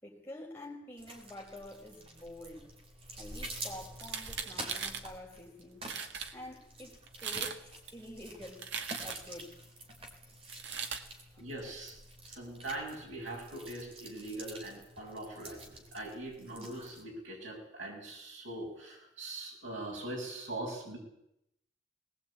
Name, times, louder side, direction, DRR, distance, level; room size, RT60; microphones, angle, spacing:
voice 1, 0.0-2.8 3.2-5.9 6.3-8.7 9.0-9.5 11.0-11.1, left 1 dB, 10° left, 4.9 m, -48 dB
sound 1, 1.0-17.0, right 1 dB, 30° right, 3.4 m, -48 dB
sound 2, 3.9-5.1 5.6-5.7 5.8-6.3 7.1-7.6 7.9-9.4 10.5-11.0, right 6 dB, 65° right, 1.8 m, -39 dB
voice 2, 11.4-12.0 12.2-21.0, right 1 dB, 85° right, 6.9 m, -42 dB
19.5 x 19.5 x 8.6 m
head